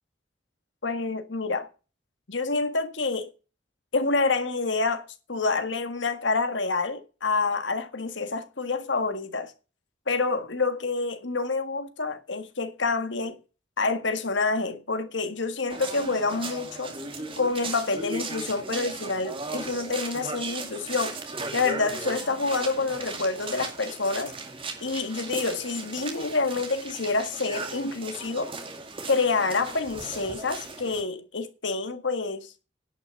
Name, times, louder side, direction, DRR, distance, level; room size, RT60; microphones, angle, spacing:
voice 1, 0.8-1.7 2.3-3.3 3.9-9.5 10.1-13.4 13.8-16.9 17.4-21.2 21.5-24.3 24.8-28.5 29.1-32.5, left 3 dB, 80° left, 1.8 m, -27 dB
sound 1, 15.7-31.0, right 3 dB, 30° right, 2.3 m, -37 dB
11.0 x 6.1 x 7.1 m
head